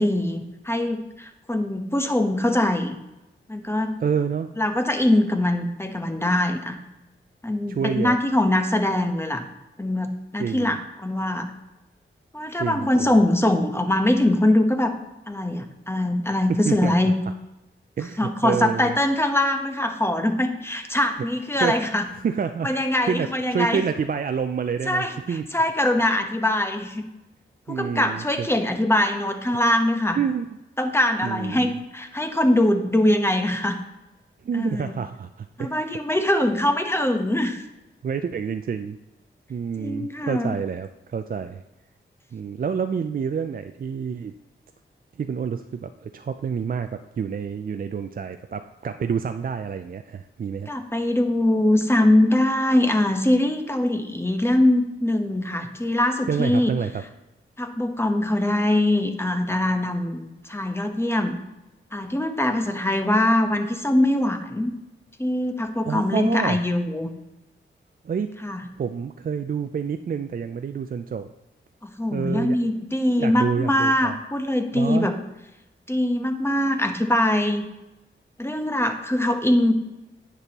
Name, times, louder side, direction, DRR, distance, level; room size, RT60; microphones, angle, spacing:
voice 1, 0.0-3.0 3.5-3.9 4.6-6.8 7.4-9.4 9.8-11.5 12.3-15.0 15.3-17.1 18.2-22.0 22.6-23.8 24.9-27.0 27.7-30.2 30.8-33.8 34.5-34.9 35.6-37.6 39.8-40.5 50.7-56.7 57.6-61.4 61.9-64.7 65.2-67.1 68.4-68.6 71.8-75.2 75.9-77.7 78.4-79.7, left 1 dB, 10° left, 5 dB, 0.9 m, -22 dB
voice 2, 4.0-4.5 7.7-8.2 10.4-10.7 12.6-13.1 16.5-17.1 18.0-18.9 21.6-21.8 22.2-22.7 23.0-25.4 27.7-28.5 30.2-30.4 31.2-31.7 34.4-35.8 38.0-39.0 39.5-41.6 42.3-44.3 45.2-50.7 56.3-57.0 65.9-66.6 68.0-68.3 68.8-71.3 72.1-72.6 73.2-74.2 74.7-75.1, right 6 dB, 45° right, 8 dB, 0.4 m, -28 dB
9.6 x 6.1 x 2.9 m, 0.96 s
cardioid pair, 60°, 21 cm